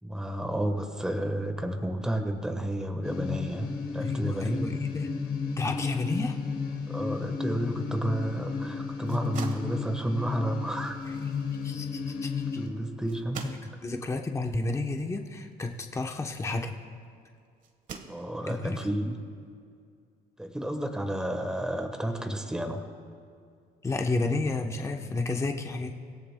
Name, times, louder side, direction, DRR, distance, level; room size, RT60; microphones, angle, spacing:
voice 1, 0.0-4.7 6.9-11.1 12.6-13.5 18.1-19.2 20.4-22.8, right 1 dB, 5° right, 5 dB, 1.2 m, -31 dB
sound 1, 3.0-12.7, left 5 dB, 65° left, 3.7 m, -33 dB
voice 2, 4.0-5.2 5.6-6.4 11.6-12.3 13.4-16.8 18.5-19.1 23.8-25.9, left 2 dB, 15° left, 3 dB, 0.8 m, -31 dB
sound 2, 8.9-17.0 17.6-18.7, right 5 dB, 50° right, 1.3 m, -48 dB
24.5 x 17.0 x 2.2 m, 2.3 s
cardioid pair, 110°, 17 cm